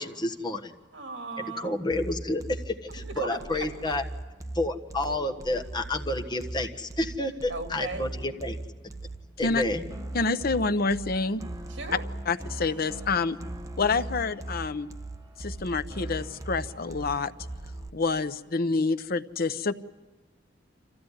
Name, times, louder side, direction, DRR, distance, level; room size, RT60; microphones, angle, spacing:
voice 1, 0.0-0.7 1.4-4.0 4.5-8.6 9.4-9.8, left 1 dB, 25° left, 4 dB, 1.4 m, -30 dB
voice 2, 0.9-1.9 3.2-3.7 7.5-8.1 9.7-10.1 11.7-12.0, right 3 dB, 70° right, 5 dB, 2.9 m, -37 dB
sound 1, 1.9-17.9, right 2 dB, 20° right, 1.0 m, -39 dB
voice 3, 10.1-11.4 12.3-13.4 13.8-14.9 15.4-17.3 17.9-19.7, left 4 dB, 55° left, 13 dB, 0.7 m, -27 dB
26.0 x 15.5 x 9.8 m, 1.3 s
head